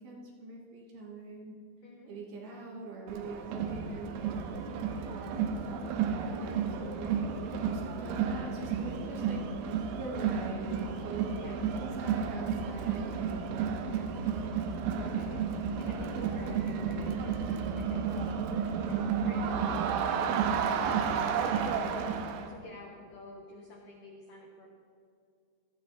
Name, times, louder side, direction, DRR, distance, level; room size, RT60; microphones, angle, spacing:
voice 1, 0.0-1.5 2.1-4.7 5.0-7.1 7.7-9.4 9.8-13.7 13.9-14.0, right 3 dB, 65° right, -1 dB, 2.6 m, -44 dB
Crowd, 3.1-22.5, right 7 dB, 90° right, 3.2 m, -32 dB
sound 1, 6.2-16.2, left 1 dB, 70° left, 1.7 m, -48 dB
voice 2, 7.4-7.9 11.3-11.6 15.0-15.4 15.8-18.3 18.8-22.0 22.5-24.7, left 2 dB, 90° left, 0 dB, 1.8 m, -49 dB
sound 2, 11.5-21.9, right 2 dB, 30° right, 3.5 m, -53 dB
17.0 x 13.5 x 3.0 m, 2.3 s
omnidirectional pair, 5.5 m